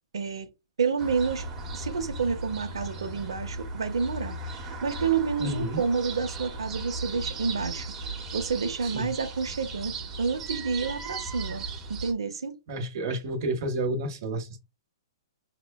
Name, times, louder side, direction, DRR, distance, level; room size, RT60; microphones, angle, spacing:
voice 1, 0.1-0.5 0.8-1.5 1.7-12.6, right 5 dB, 85° right, 0.7 m, -29 dB
sound 1, 1.0-12.1, right 3 dB, 20° right, 0.9 m, -37 dB
voice 2, 5.4-5.8 8.8-9.1 12.7-14.6, right 1 dB, 50° right, 0.9 m, -30 dB
5.9 x 2.2 x 2.2 m
hypercardioid pair, 150°, 3 cm